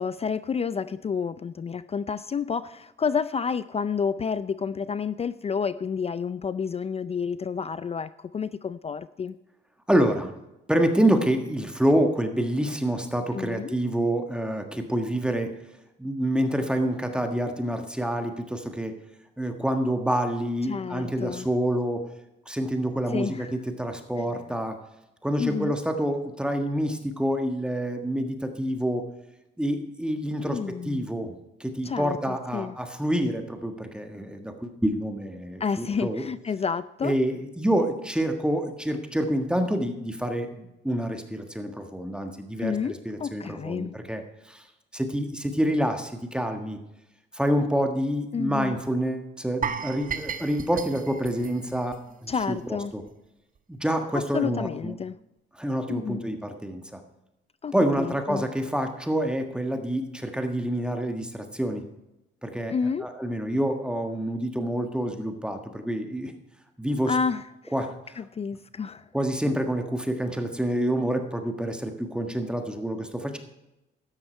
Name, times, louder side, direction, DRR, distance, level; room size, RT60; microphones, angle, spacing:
voice 1, 0.0-9.3 13.3-13.8 20.7-21.5 23.1-23.5 24.2-24.3 25.4-25.8 30.4-31.1 31.8-32.7 35.6-37.1 42.6-43.9 48.3-48.8 52.3-52.9 54.1-55.2 55.9-56.2 57.6-58.5 62.7-63.1 67.1-67.7 68.2-69.0, left 6 dB, 30° left, 15 dB, 0.4 m, -30 dB
voice 2, 9.9-10.3 10.7-15.5 16.0-19.0 19.4-22.0 22.4-24.8 25.2-29.0 29.6-30.6 30.8-31.3 31.6-36.2 37.0-44.2 44.5-44.6 44.9-46.8 47.3-51.9 52.2-53.0 53.7-54.9 55.5-57.0 57.7-61.8 62.4-62.7 63.0-66.3 66.8-67.2 67.7-67.9 69.1-73.4, right 1 dB, 5° right, 5 dB, 1.5 m, -27 dB
sound 1, 49.6-52.6 52.9-53.1 53.6-53.7, right 7 dB, 45° right, 0.9 m, -35 dB
13.0 x 9.8 x 4.5 m, 0.93 s
cardioid pair, 90°, 20 cm